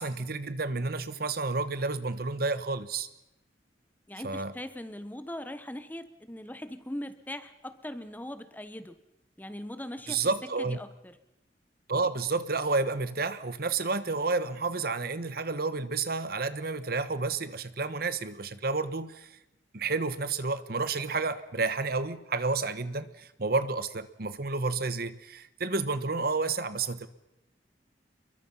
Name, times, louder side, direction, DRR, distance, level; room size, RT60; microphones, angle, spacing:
voice 1, 0.0-3.1 4.2-4.5 10.1-10.8 11.9-19.3 19.7-27.1, right 3 dB, 60° right, 12 dB, 1.3 m, -30 dB
voice 2, 4.1-8.9 9.4-10.3 10.6-11.1, left 1 dB, 10° left, 11 dB, 1.1 m, -40 dB
28.5 x 22.5 x 5.7 m, 0.91 s
head